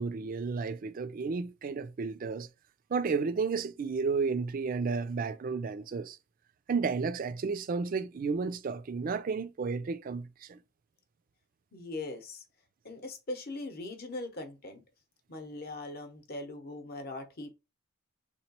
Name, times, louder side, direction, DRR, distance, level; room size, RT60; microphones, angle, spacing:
voice 1, 0.0-2.5 2.9-6.2 6.7-10.6, right 4 dB, 40° right, 0.3 m, -32 dB
voice 2, 11.7-12.4 12.8-14.8 15.3-17.5, left 2 dB, 45° left, 0.8 m, -40 dB
3.8 x 2.9 x 2.8 m
head